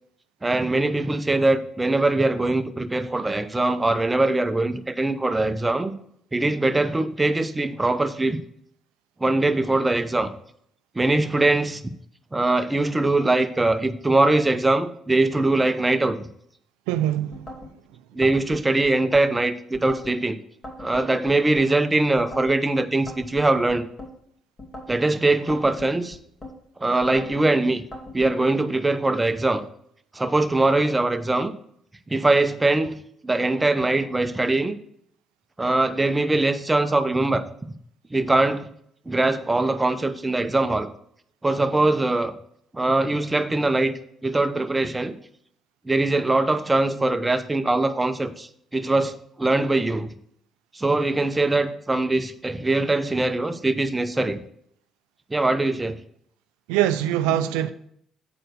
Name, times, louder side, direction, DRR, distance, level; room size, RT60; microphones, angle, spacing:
voice 1, 0.4-6.0 6.3-8.4 9.2-10.3 10.9-11.9 12.3-16.3 18.1-20.4 20.8-23.9 24.9-26.2 26.8-27.8 28.1-29.7 30.1-31.5 32.1-33.0 33.2-34.8 35.6-37.4 38.1-38.7 39.1-40.9 41.4-42.3 42.7-43.9 44.2-45.1 45.9-50.1 50.7-54.4 55.3-56.0, right 2 dB, 20° right, 0.8 m, -22 dB
voice 2, 16.9-17.4 56.7-57.7, right 12 dB, 85° right, 0.4 m, -23 dB
sound 1, 17.3-17.7 18.2-19.3 19.7-20.2 20.6-21.7 22.2-22.6 23.1-24.1 24.6-25.0 25.5-26.5 27.0-27.4 27.9-28.3, left 1 dB, 35° left, 2.7 m, -40 dB
7.7 x 4.4 x 6.6 m
supercardioid pair, 55°, 0 cm